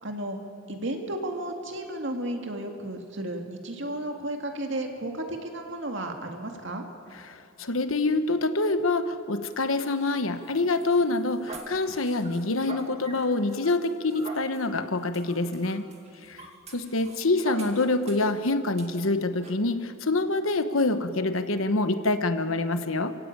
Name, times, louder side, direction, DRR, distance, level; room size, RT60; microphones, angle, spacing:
voice 1, 0.0-0.4 0.7-6.8 17.5-17.9, right 1 dB, 60° right, 3 dB, 2.2 m, -33 dB
voice 2, 7.2-15.9 16.3-16.4 16.7-23.1, left 2 dB, 75° left, 9 dB, 1.2 m, -26 dB
sound 1, 9.6-18.3 18.8-18.9 19.4-19.6, right 2 dB, 30° right, 2.3 m, -45 dB
27.5 x 16.5 x 8.8 m, 2.6 s
head